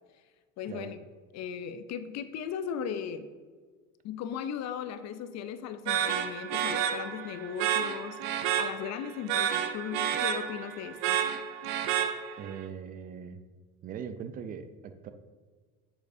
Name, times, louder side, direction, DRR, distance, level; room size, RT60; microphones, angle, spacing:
voice 1, 0.6-1.0 1.3-3.3 4.0-8.2 8.6-11.2, left 8 dB, 35° left, 11 dB, 0.5 m, -37 dB
sound 1, 5.9-12.6, right 9 dB, 60° right, 0.8 m, -30 dB
voice 2, 12.4-13.4 13.8-15.1, right 7 dB, 20° right, 10 dB, 0.3 m, -40 dB
7.7 x 7.0 x 2.6 m, 1.5 s
hypercardioid pair, 80°, 46 cm